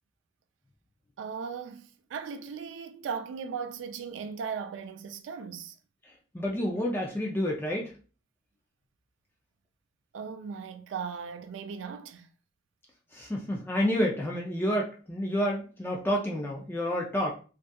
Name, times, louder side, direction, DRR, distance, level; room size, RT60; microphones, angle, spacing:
voice 1, 1.2-5.8 10.1-12.3, right 6 dB, 90° right, 0.3 m, -37 dB
voice 2, 6.3-7.9 13.1-17.3, equal, 10° left, 0.3 m, -29 dB
2.6 x 2.2 x 2.2 m
head